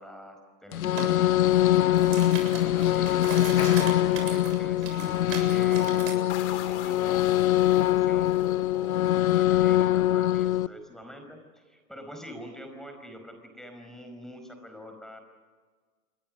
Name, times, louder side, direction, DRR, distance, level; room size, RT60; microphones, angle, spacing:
voice 1, 0.0-15.2, equal, ahead, 5 dB, 4.9 m, -45 dB
sound 1, 0.7-10.7, left 14 dB, 75° left, 0.7 m, -23 dB
sound 2, 1.0-1.1 1.6-6.2, right 6 dB, 60° right, 7.6 m, -38 dB
sound 3, 6.3-10.8, left 10 dB, 50° left, 3.0 m, -42 dB
29.5 x 22.5 x 6.4 m, 1.5 s
hypercardioid pair, 115°, 43 cm